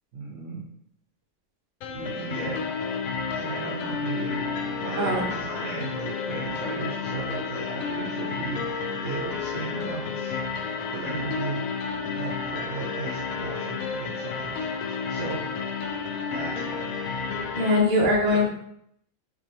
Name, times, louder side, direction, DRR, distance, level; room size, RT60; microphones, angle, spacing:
voice 1, 0.1-0.7 1.9-2.6 3.3-4.5 4.8-10.4 10.9-11.7 12.1-14.7 15.1-15.4 16.3-16.9 18.3-18.4, right 4 dB, 65° right, -3 dB, 1.2 m, -36 dB
sound 1, 1.8-17.8, left 5 dB, 85° left, 1.0 m, -31 dB
voice 2, 17.6-18.4, left 1 dB, 45° right, -2 dB, 1.0 m, -21 dB
5.1 x 3.2 x 2.9 m, 0.74 s
omnidirectional pair, 1.4 m